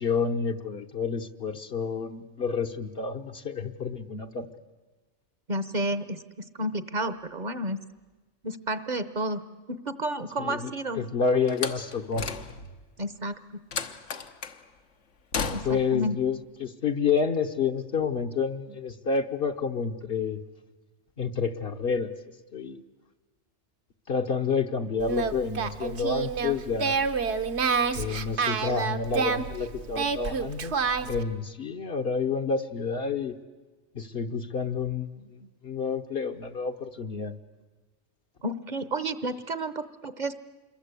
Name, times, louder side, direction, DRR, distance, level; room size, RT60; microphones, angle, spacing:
voice 1, 0.0-4.5 10.4-12.3 15.6-20.4 21.2-22.1 22.5-22.8 24.1-27.0 27.9-30.7 31.0-33.3 33.9-37.3, left 5 dB, 55° left, 4 dB, 1.2 m, -29 dB
voice 2, 5.5-6.2 6.5-7.8 8.4-9.4 9.7-11.0 13.0-13.4 15.5-16.1 38.4-40.3, right 1 dB, 40° right, 13 dB, 1.0 m, -31 dB
Slam, 11.5-12.8 13.7-14.6 15.3-16.0, left 5 dB, 80° left, 1.4 m, -34 dB
Singing, 25.0-31.2, right 5 dB, 65° right, 1.3 m, -28 dB
27.0 x 22.0 x 8.3 m, 1.3 s
omnidirectional pair, 1.2 m